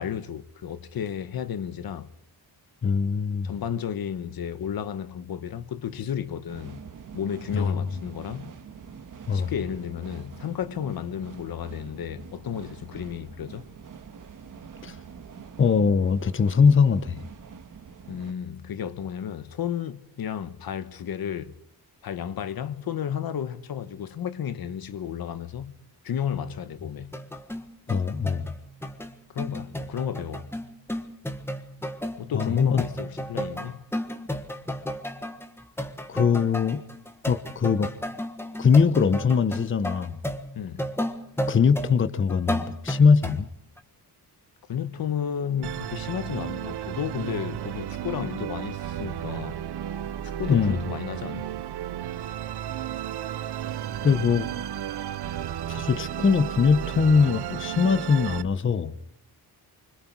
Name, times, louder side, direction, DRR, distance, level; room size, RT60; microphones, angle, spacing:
voice 1, 0.0-2.1 3.4-6.9 7.1-8.5 9.3-13.7 18.1-21.5 22.0-25.8 26.0-27.2 29.3-30.5 32.2-33.8 40.5-40.8 44.7-49.6 50.2-51.5, left 8 dB, 65° left, 1.2 m, -32 dB
voice 2, 2.8-3.5 7.5-7.8 9.3-9.5 14.8-15.0 15.6-17.2 27.9-28.5 32.3-32.8 36.1-36.8 37.3-37.9 38.6-40.2 41.5-43.5 50.5-50.8 54.0-54.5 55.7-58.9, left 5 dB, 30° left, 0.9 m, -21 dB
sound 1, 6.5-18.3, right 6 dB, 55° right, 1.6 m, -45 dB
sound 2, 27.0-43.4 43.8-43.9, equal, 5° left, 1.4 m, -33 dB
Musical instrument, 45.6-58.4, right 11 dB, 80° right, 0.8 m, -33 dB
25.5 x 25.0 x 4.7 m
wide cardioid pair, 170°, 39 cm